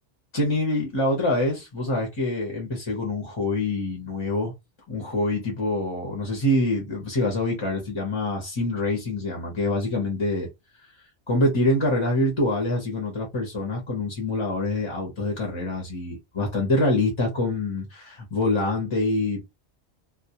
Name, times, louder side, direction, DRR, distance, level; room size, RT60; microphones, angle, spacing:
voice 1, 0.3-4.5 4.9-10.5 11.3-19.4, left 2 dB, 30° left, 0.6 m, -25 dB
2.2 x 2.1 x 2.8 m
omnidirectional pair, 1.2 m